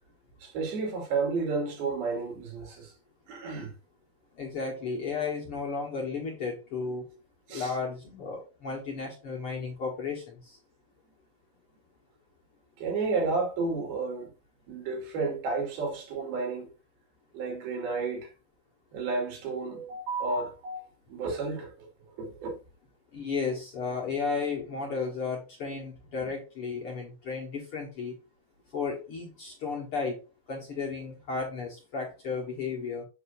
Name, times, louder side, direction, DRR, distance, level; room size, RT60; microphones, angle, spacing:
voice 1, 0.4-2.9 3.3-3.7 7.5-7.7 12.8-14.3 14.7-16.7 17.3-18.3 18.9-20.8 21.1-21.9 22.2-22.5 26.2-26.3, right 4 dB, 85° right, 4.3 m, -31 dB
voice 2, 4.4-7.0 7.5-10.6 23.1-28.2 28.7-30.2 30.5-33.0, left 4 dB, 50° left, 1.8 m, -34 dB
7.9 x 6.6 x 2.6 m
omnidirectional pair, 4.3 m